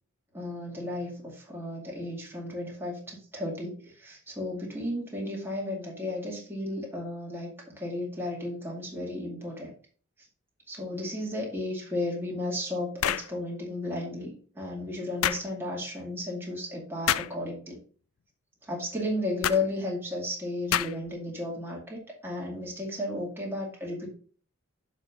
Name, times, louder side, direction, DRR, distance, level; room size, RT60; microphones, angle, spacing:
voice 1, 0.3-9.7 10.7-17.8 18.7-24.1, left 1 dB, 10° right, -3 dB, 2.2 m, -34 dB
sound 1, 13.0-13.3 15.2-15.5 17.1-17.4 19.4-19.6 20.7-21.1, left 10 dB, 70° left, 0.4 m, -27 dB
7.0 x 4.1 x 5.9 m, 0.43 s
head